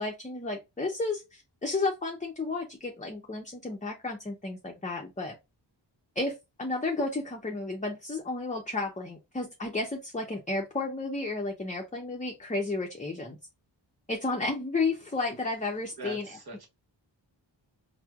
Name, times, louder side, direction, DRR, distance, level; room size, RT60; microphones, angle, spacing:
voice 1, 0.0-5.4 6.2-13.4 14.1-16.3, left 3 dB, 15° left, 0.6 m, -32 dB
voice 2, 16.0-16.7, right 1 dB, 55° right, 1.2 m, -41 dB
4.3 x 2.1 x 2.3 m
cardioid pair, 55°, 45 cm